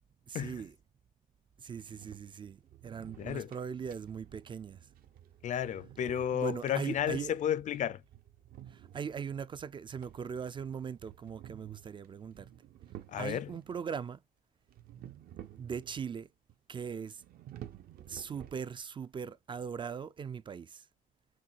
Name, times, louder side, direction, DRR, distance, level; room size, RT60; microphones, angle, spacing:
voice 1, 0.3-0.8 1.6-4.8 6.3-7.4 8.7-12.5 13.2-14.2 15.6-16.3 16.7-17.2 18.1-20.9, right 7 dB, 30° right, 0.3 m, -40 dB
sound 1, 1.7-13.8 14.7-16.2 16.5-16.6 17.1-19.1, right 11 dB, 60° right, 0.8 m, -53 dB
voice 2, 3.2-3.5 5.4-8.0 13.1-13.5, left 9 dB, 45° left, 0.4 m, -32 dB
6.2 x 2.3 x 2.9 m
cardioid pair, 110°, 17 cm